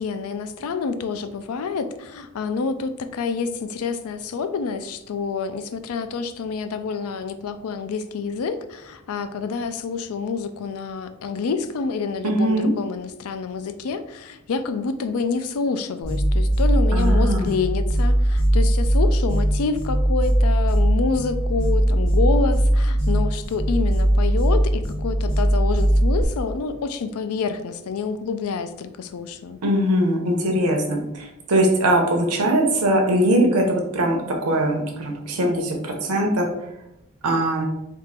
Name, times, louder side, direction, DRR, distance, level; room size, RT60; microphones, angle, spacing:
voice 1, 0.0-29.6, left 5 dB, 80° left, 10 dB, 0.4 m, -28 dB
voice 2, 12.2-12.7 16.9-17.5 29.6-36.5 37.2-37.7, right 1 dB, 90° right, 1 dB, 0.7 m, -21 dB
sound 1, 16.0-26.2, right 1 dB, 30° left, 1.1 m, -20 dB
3.5 x 2.5 x 4.2 m, 0.87 s
head